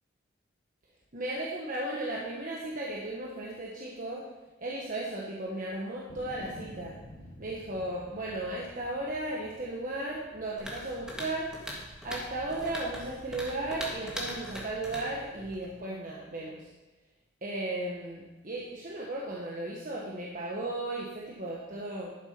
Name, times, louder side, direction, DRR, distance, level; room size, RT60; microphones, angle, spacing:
voice 1, 1.1-4.2 4.6-7.0 7.4-11.5 12.0-16.6 17.4-22.1, right 2 dB, 40° right, -4 dB, 1.3 m, -35 dB
sound 1, 6.1-11.3 11.9-12.6, left 1 dB, 35° left, 2.0 m, -50 dB
sound 2, 10.6-15.8, equal, 5° right, 1.6 m, -41 dB
11.0 x 7.2 x 5.2 m, 1.2 s
head